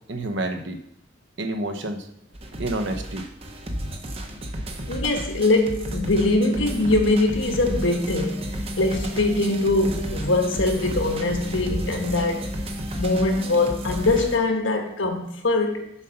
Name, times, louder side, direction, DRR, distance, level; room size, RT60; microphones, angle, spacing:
voice 1, 0.1-0.8 1.4-2.0 2.6-3.3, right 1 dB, 65° right, 7 dB, 0.9 m, -28 dB
sound 1, 2.3-14.4, right 1 dB, 30° right, 0.8 m, -33 dB
voice 2, 4.9-12.5 13.0-15.9, left 2 dB, 80° left, 4 dB, 1.3 m, -22 dB
sound 2, 5.9-14.2, left 1 dB, 30° left, 0.9 m, -36 dB
7.1 x 5.5 x 5.7 m, 0.76 s
head